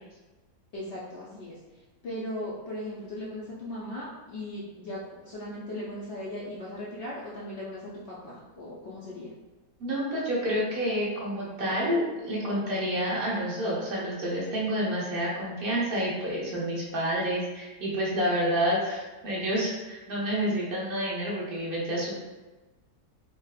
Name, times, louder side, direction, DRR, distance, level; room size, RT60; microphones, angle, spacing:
voice 1, 0.7-9.3, left 1 dB, 65° left, -6 dB, 0.7 m, -38 dB
voice 2, 9.8-22.1, equal, 45° right, -5 dB, 0.9 m, -29 dB
4.1 x 2.1 x 2.3 m, 1.2 s
omnidirectional pair, 1.7 m